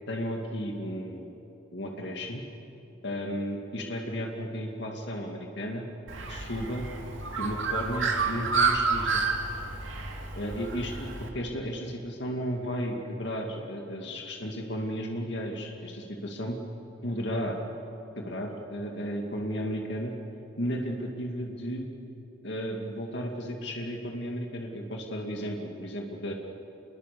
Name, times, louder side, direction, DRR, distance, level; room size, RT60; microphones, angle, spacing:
voice 1, 0.1-1.3 1.7-2.4 3.0-5.8 6.3-6.9 7.4-9.2 10.3-16.6 17.0-17.6 18.2-20.1 20.6-21.9 22.4-26.3, equal, 60° left, 1 dB, 2.3 m, -34 dB
Bird, 6.1-11.3, right 4 dB, 80° right, 2.5 m, -29 dB
27.5 x 22.0 x 6.9 m, 2.9 s
head